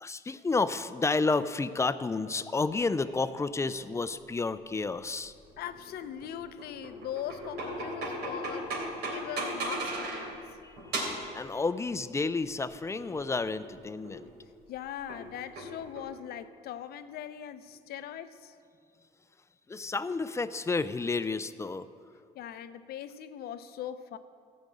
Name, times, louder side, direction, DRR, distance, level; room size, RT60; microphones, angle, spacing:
voice 1, 0.0-5.3 10.6-10.7 11.3-14.3 19.7-21.9, left 3 dB, 15° left, 13 dB, 0.4 m, -30 dB
sound 1, 5.3-10.4 10.8-11.3 12.6-13.7 14.0-14.3 15.1-16.1, right 1 dB, 85° right, 3.1 m, -37 dB
voice 2, 5.6-10.3 14.7-18.5 22.3-24.2, left 10 dB, 65° left, 12 dB, 0.6 m, -41 dB
14.5 x 5.2 x 8.5 m, 2.3 s
cardioid pair, 110°, 17 cm